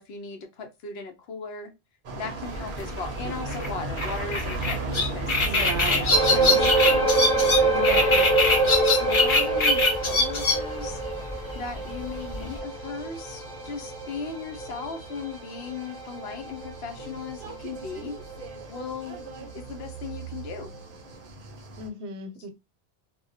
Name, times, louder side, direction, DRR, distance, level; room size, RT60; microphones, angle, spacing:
voice 1, 0.0-1.7 2.2-7.1 7.6-8.3 9.0-11.0 11.5-18.2 18.7-20.7, left 4 dB, 70° left, 0.8 m, -37 dB
sound 1, 2.0-21.9, right 4 dB, 60° right, 0.7 m, -38 dB
sound 2, 2.5-12.6, left 3 dB, 50° left, 0.3 m, -24 dB
voice 2, 5.4-6.0 7.7-8.0 21.8-22.5, right 3 dB, 85° right, 0.9 m, -35 dB
sound 3, 6.1-18.8 19.1-19.3 19.9-20.0, right 3 dB, 20° left, 0.9 m, -26 dB
2.2 x 2.1 x 2.6 m
omnidirectional pair, 1.1 m